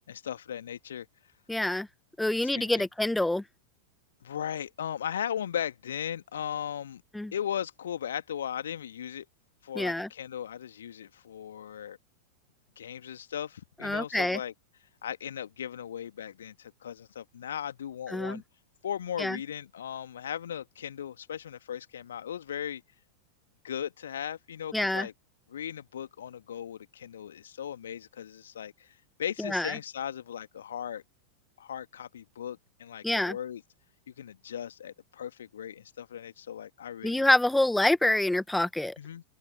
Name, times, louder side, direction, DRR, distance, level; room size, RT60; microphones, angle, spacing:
voice 1, 0.1-1.1 2.4-2.9 4.2-7.0 7.3-9.3 9.6-12.0 12.8-14.5 15.0-18.4 18.8-22.8 23.6-25.1 25.5-31.0 31.6-33.6 34.1-37.3 39.0-39.2, left 9 dB, 65° left, 2.1 m, -37 dB
voice 2, 1.5-1.9 2.2-3.4 7.1-7.3 9.7-10.1 13.8-14.4 18.1-18.4 19.2-19.4 24.7-25.1 29.4-29.8 33.0-33.4 37.0-38.9, left 1 dB, 5° left, 0.8 m, -26 dB
figure-of-eight pair, 90°, 0 cm